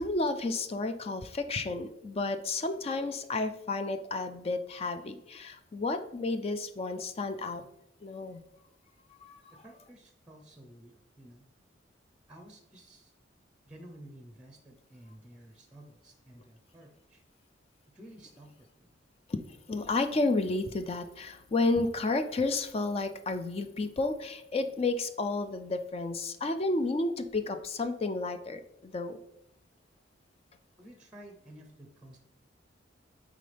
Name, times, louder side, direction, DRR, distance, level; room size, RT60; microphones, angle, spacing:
voice 1, 0.0-7.6 8.0-8.4 9.2-9.6 19.3-19.4 19.7-29.2, left 3 dB, 30° left, 9 dB, 0.4 m, -31 dB
voice 2, 9.6-11.4 12.3-13.1 13.7-17.2 17.9-18.9 30.8-32.2, right 1 dB, 5° right, 4 dB, 0.7 m, -52 dB
9.2 x 3.8 x 3.3 m, 0.82 s
head